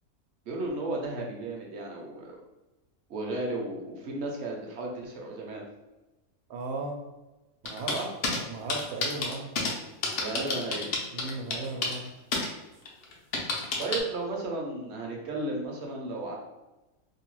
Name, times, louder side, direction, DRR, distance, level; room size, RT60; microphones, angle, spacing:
voice 1, 0.5-2.3 3.1-5.6 7.9-8.1 10.2-10.9 13.8-16.3, right 2 dB, 60° right, -1 dB, 0.7 m, -34 dB
voice 2, 6.5-7.0 7.6-9.5 11.1-12.1, right 3 dB, 85° right, 1 dB, 1.1 m, -36 dB
sound 1, 7.7-8.4 8.7-9.7 10.0-12.1 12.3-12.5 12.9-14.0, left 3 dB, 70° left, 0.5 m, -29 dB
2.7 x 2.2 x 3.0 m, 1.0 s
omnidirectional pair, 1.5 m